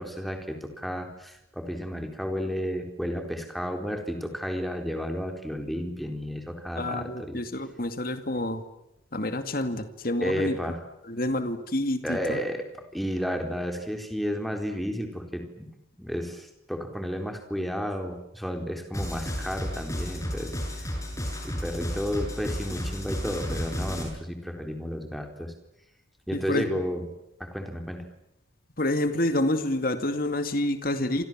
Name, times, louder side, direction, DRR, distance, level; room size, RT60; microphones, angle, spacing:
voice 1, 0.0-7.4 10.2-10.8 12.0-15.7 16.0-20.6 21.4-25.5 26.3-27.0 27.4-28.1, equal, ahead, 4 dB, 4.0 m, -32 dB
voice 2, 6.8-8.6 9.1-10.6 11.1-12.4 26.3-26.6 28.8-31.3, left 1 dB, 45° left, 9 dB, 2.3 m, -28 dB
sound 1, 18.9-24.0, equal, 15° left, 7.9 m, -33 dB
29.0 x 27.0 x 7.5 m, 0.84 s
head